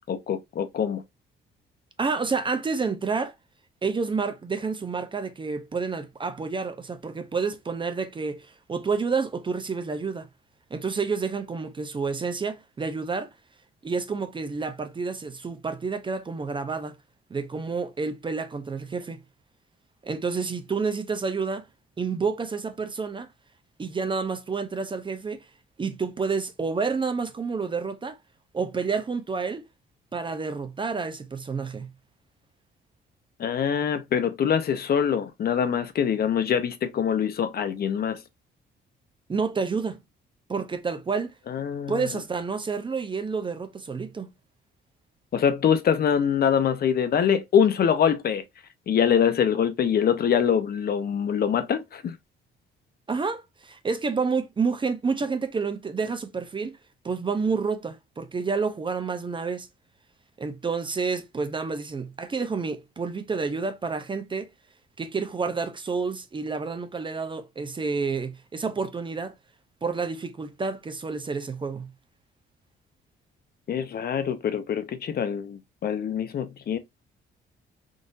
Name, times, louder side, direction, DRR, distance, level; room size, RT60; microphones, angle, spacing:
voice 1, 0.1-1.0 33.4-38.2 41.5-42.1 45.3-48.4 48.9-52.2 73.7-76.8, left 8 dB, 50° left, 0.6 m, -24 dB
voice 2, 2.0-3.3 3.8-10.3 10.7-13.3 13.8-17.0 17.3-19.2 20.0-21.7 22.0-23.3 23.8-25.5 25.8-28.2 28.5-29.6 30.1-31.9 39.3-40.0 40.5-41.3 41.9-44.3 53.1-56.8 57.0-59.7 60.4-64.5 65.0-69.3 69.8-71.9, right 4 dB, 25° right, 0.5 m, -29 dB
3.8 x 2.6 x 2.5 m
cardioid pair, 90°, 20 cm